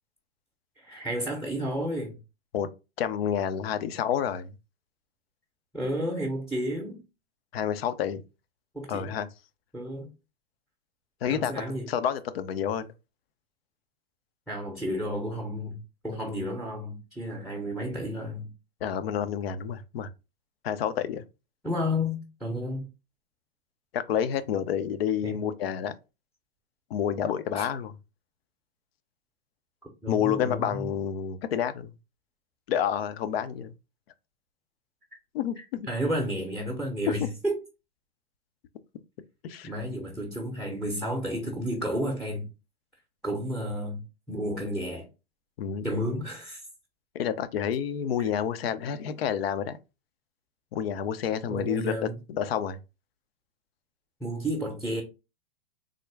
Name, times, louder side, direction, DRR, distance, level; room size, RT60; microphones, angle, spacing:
voice 1, 0.8-2.1 5.7-7.0 8.7-9.1 9.7-10.1 11.3-11.9 14.5-15.8 16.0-18.5 21.6-22.9 25.2-25.4 27.5-27.7 30.0-30.9 35.6-37.6 39.6-42.5 43.2-44.0 44.3-45.1 45.8-46.7 51.5-52.2 54.2-55.0, equal, ahead, 0.7 m, -31 dB
voice 2, 3.0-4.5 7.5-8.2 8.9-9.3 11.2-11.5 11.9-12.9 18.8-20.1 20.6-21.2 23.9-25.9 26.9-27.9 30.1-31.9 32.7-33.7 35.3-35.9 39.4-39.7 45.6-45.9 47.1-49.8 50.7-52.8, left 8 dB, 70° left, 0.6 m, -29 dB
3.6 x 2.1 x 3.3 m
hypercardioid pair, 125°, 31 cm